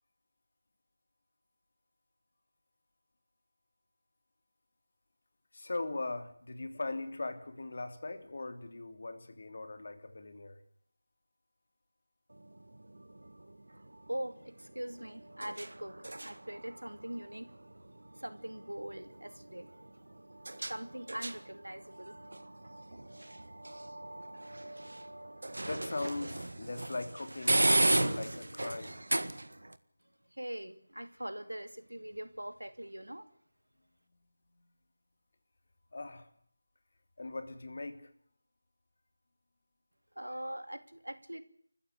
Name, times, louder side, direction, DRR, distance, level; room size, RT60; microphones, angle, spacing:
voice 1, 5.5-10.6 25.7-29.0 35.9-36.3 37.2-38.0, left 2 dB, 45° left, 9 dB, 3.1 m, -40 dB
sound 1, 12.3-29.8, right 1 dB, 65° right, 1.6 m, -36 dB
voice 2, 14.1-17.5 18.1-19.8 20.7-22.2 30.3-33.3 40.1-41.4, right 1 dB, 80° right, 11 dB, 2.5 m, -42 dB
29.0 x 15.0 x 8.5 m, 0.63 s
figure-of-eight pair, 165°, 0 cm